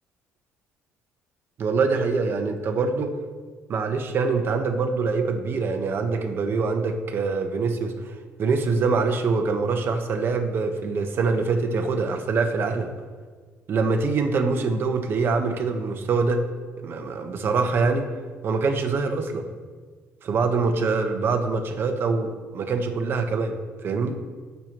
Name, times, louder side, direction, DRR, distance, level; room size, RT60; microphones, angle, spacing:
voice 1, 1.6-3.1 3.7-12.9 13.7-16.4 16.8-18.1 18.4-19.5 20.2-23.6 23.8-24.2, right 4 dB, 45° right, 5 dB, 1.2 m, -24 dB
19.0 x 6.9 x 3.1 m, 1.5 s
cardioid pair, 140°, 5 cm